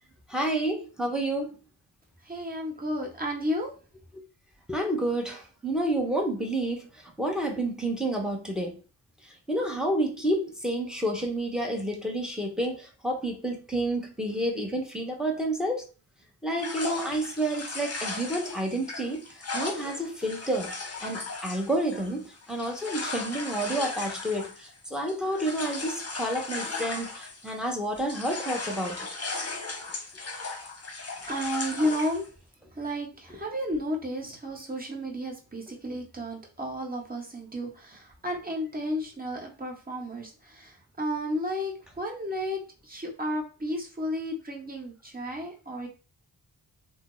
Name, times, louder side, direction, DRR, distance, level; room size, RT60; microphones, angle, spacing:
voice 1, 0.3-1.6 4.7-8.8 9.2-15.8 16.4-19.2 19.5-20.7 21.0-29.1, right 1 dB, ahead, 0.9 m, -30 dB
voice 2, 2.2-3.7 31.3-32.3 32.8-45.9, equal, 20° right, 1.0 m, -32 dB
sound 1, 16.6-27.7 28.0-32.3, left 3 dB, 35° left, 0.9 m, -37 dB
2.7 x 2.0 x 3.7 m
cardioid pair, 50°, 45 cm